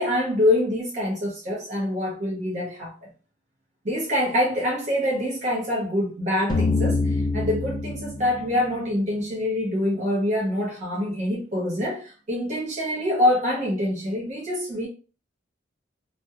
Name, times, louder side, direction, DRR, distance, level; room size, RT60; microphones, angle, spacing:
voice 1, 0.0-3.1 3.8-14.9, left 1 dB, 40° right, 0.6 m, -25 dB
sound 1, 6.5-9.4, left 3 dB, 25° left, 0.5 m, -26 dB
2.3 x 2.1 x 2.7 m
head